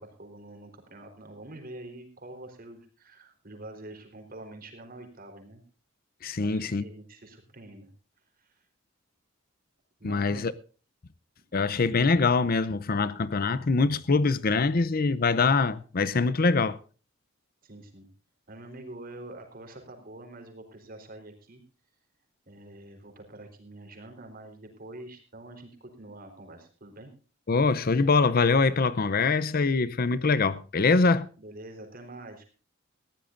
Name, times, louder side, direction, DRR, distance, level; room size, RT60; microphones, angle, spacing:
voice 1, 0.0-5.6 6.4-7.9 8.4-8.6 10.0-10.5 17.6-18.1 18.5-21.6 22.5-27.1 31.4-32.5, right 1 dB, 45° right, 4.0 m, -46 dB
voice 2, 6.2-6.8 10.0-10.5 11.5-16.8 27.5-31.3, left 4 dB, 50° left, 0.6 m, -24 dB
20.5 x 14.5 x 2.6 m
head